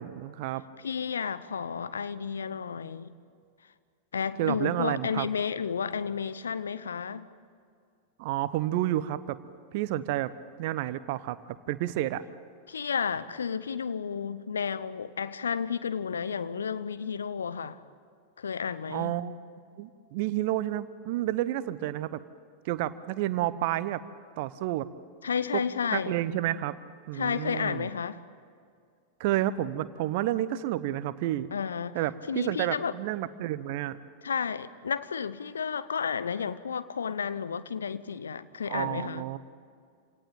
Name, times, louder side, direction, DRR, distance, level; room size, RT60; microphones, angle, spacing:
voice 1, 0.0-0.6 4.4-5.3 8.2-9.4 9.7-10.3 10.6-11.4 11.7-12.2 18.9-19.4 19.8-22.2 22.6-24.0 24.4-24.9 25.5-25.6 25.9-26.8 27.1-27.9 29.2-31.5 31.9-34.0 38.7-39.4, right 14 dB, 50° right, 0.9 m, -30 dB
voice 2, 0.8-3.1 4.1-7.3 12.7-17.8 18.4-19.2 25.2-26.2 27.1-28.2 31.5-32.0 32.3-32.9 34.2-39.2, left 6 dB, 70° left, 0.9 m, -32 dB
27.5 x 18.0 x 8.9 m
figure-of-eight pair, 90°, 0 cm